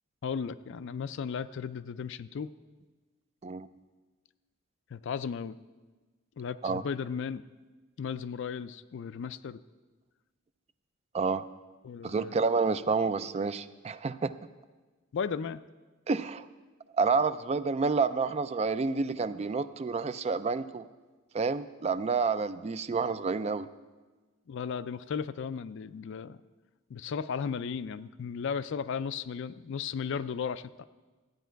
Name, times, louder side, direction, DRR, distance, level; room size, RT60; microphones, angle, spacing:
voice 1, 0.2-2.5 4.9-5.6 6.4-7.4 8.0-9.6 11.8-12.4 15.1-15.6 24.5-26.4 26.9-30.8, left 6 dB, 60° left, 14 dB, 0.4 m, -35 dB
voice 2, 11.1-11.4 12.0-14.3 16.1-16.5 17.0-20.9 21.3-23.7, right 4 dB, 30° right, 13 dB, 0.3 m, -29 dB
13.5 x 9.3 x 4.6 m, 1.3 s
head